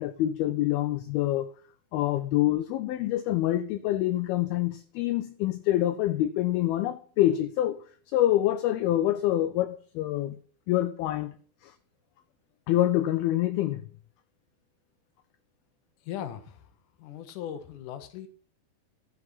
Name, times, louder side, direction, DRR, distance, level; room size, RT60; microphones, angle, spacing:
voice 1, 0.0-1.5 1.9-7.8 8.1-10.4 10.7-11.4 11.6-11.7 12.7-13.9, left 14 dB, 80° left, 2.3 m, -26 dB
voice 2, 16.0-16.7 17.0-18.3, left 10 dB, 65° left, 2.3 m, -38 dB
13.0 x 6.8 x 5.6 m
omnidirectional pair, 4.8 m